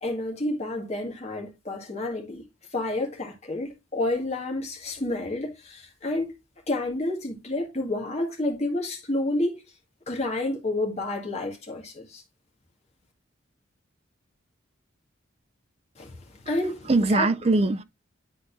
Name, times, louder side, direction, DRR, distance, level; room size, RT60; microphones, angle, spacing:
voice 1, 0.0-2.4 2.7-6.3 6.7-9.6 10.1-12.2 16.0-16.1 16.5-17.3, left 2 dB, 30° left, 1.8 m, -29 dB
voice 2, 16.6-17.8, right 3 dB, 30° right, 0.4 m, -22 dB
10.5 x 4.1 x 2.6 m
head